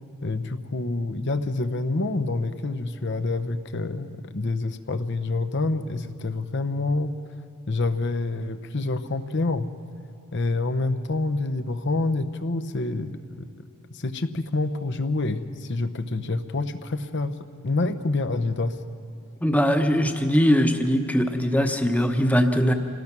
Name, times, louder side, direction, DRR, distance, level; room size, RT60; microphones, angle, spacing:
voice 1, 0.2-7.2 7.7-9.7 10.3-13.5 13.9-17.4 17.6-18.8, left 2 dB, 55° left, 11 dB, 0.9 m, -27 dB
voice 2, 19.4-22.7, equal, 5° left, 5 dB, 1.0 m, -21 dB
26.5 x 18.5 x 6.1 m, 2.8 s
head